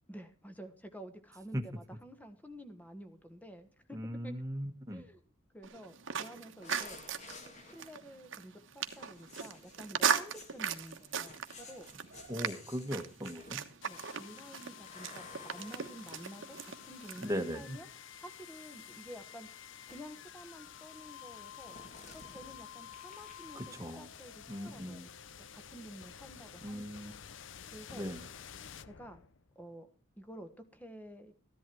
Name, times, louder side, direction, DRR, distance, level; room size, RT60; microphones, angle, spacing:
voice 1, 0.1-4.0 4.2-4.3 4.9-5.2 5.5-7.0 7.6-11.9 13.8-17.9 18.2-19.5 19.9-21.8 22.1-25.1 25.5-27.2 27.7-28.0 28.8-29.2 29.5-29.9 30.2-31.3, equal, 10° left, 9 dB, 1.3 m, -50 dB
voice 2, 3.9-5.1 12.3-13.6 17.2-17.8 23.5-24.1 24.5-25.1 26.6-27.1 27.9-28.2, equal, 15° right, 5 dB, 1.3 m, -38 dB
sound 1, 5.6-17.3, right 7 dB, 65° right, 1.2 m, -38 dB
sound 2, 6.6-8.2 8.9-13.9 14.9-17.0 18.0-19.2 19.9-20.2 21.6-23.9 24.1-24.3, left 3 dB, 35° left, 2.2 m, -54 dB
sound 3, 13.8-29.7, left 9 dB, 65° left, 0.6 m, -51 dB
14.5 x 11.0 x 4.5 m, 0.37 s
head